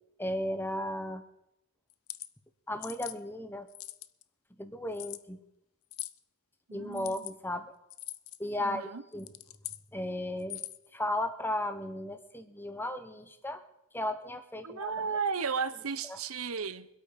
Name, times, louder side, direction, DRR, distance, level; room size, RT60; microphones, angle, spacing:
voice 1, 0.2-1.2 2.7-3.7 4.6-5.4 6.7-7.7 8.4-8.8 9.1-9.3 9.9-10.6 10.9-13.6 13.9-14.9 16.1-16.2, left 1 dB, 10° left, 9 dB, 1.1 m, -35 dB
sound 1, 1.9-2.3 2.8-3.2 3.7-4.2 4.9-5.2 5.9-6.2 6.9-7.3 7.9-8.4 9.1-9.8 10.4-10.9, left 15 dB, 70° left, 0.6 m, -42 dB
voice 2, 6.7-7.3 8.6-9.0 14.6-16.9, right 5 dB, 70° right, 13 dB, 0.9 m, -34 dB
24.5 x 8.5 x 5.2 m, 0.83 s
head